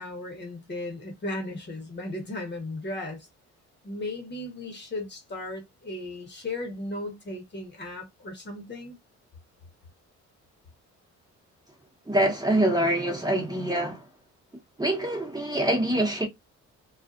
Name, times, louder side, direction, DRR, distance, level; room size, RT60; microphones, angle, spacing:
voice 1, 0.0-3.3 3.8-9.0, left 2 dB, 35° left, 1.1 m, -36 dB
voice 2, 12.1-14.0 14.8-16.2, right 1 dB, 15° right, 1.0 m, -25 dB
2.4 x 2.4 x 2.5 m
cardioid pair, 90°, 30 cm